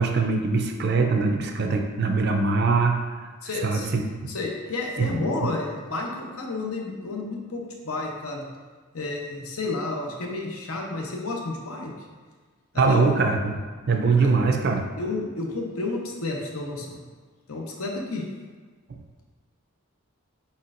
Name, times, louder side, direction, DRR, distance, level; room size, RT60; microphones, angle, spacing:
voice 1, 0.0-3.0 3.6-4.0 5.0-5.1 12.8-13.6 13.9-14.8, right 4 dB, 50° right, 4 dB, 0.4 m, -22 dB
voice 2, 3.4-3.9 4.3-8.5 8.9-11.9 12.7-13.1 14.2-14.3 15.0-17.0 17.5-18.2, left 2 dB, 85° left, 0 dB, 0.8 m, -31 dB
4.4 x 4.2 x 2.5 m, 1.4 s
head